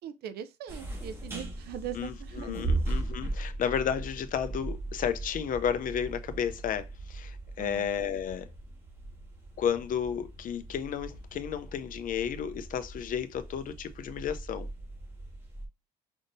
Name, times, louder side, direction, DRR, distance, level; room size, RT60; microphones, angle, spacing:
voice 1, 0.0-2.6 7.6-7.9, right 9 dB, 70° right, 0.6 m, -41 dB
sound 1, 0.7-15.7, right 2 dB, 15° right, 1.7 m, -38 dB
voice 2, 1.9-8.5 9.6-14.7, left 8 dB, 55° left, 0.7 m, -32 dB
5.2 x 3.6 x 2.6 m
cardioid pair, 110°, 17 cm